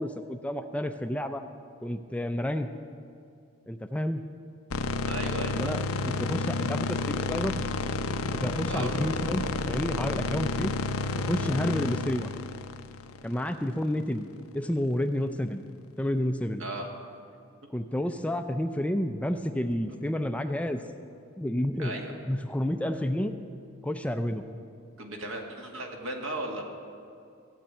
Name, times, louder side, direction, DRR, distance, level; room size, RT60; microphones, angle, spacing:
voice 1, 0.0-1.4 1.8-2.7 3.7-4.2 5.5-7.7 8.3-10.7 11.2-12.3 13.2-14.3 14.5-15.6 16.0-16.6 17.7-20.8 21.4-21.9 22.3-23.3 23.8-24.4, left 1 dB, 5° left, 7 dB, 0.4 m, -30 dB
sound 1, 4.7-13.9, left 3 dB, 80° left, 0.7 m, -31 dB
voice 2, 5.0-5.8 8.7-8.9 16.6-16.9 21.8-22.1 25.0-26.6, right 1 dB, 65° right, 1 dB, 2.0 m, -36 dB
15.0 x 8.2 x 8.8 m, 2.4 s
head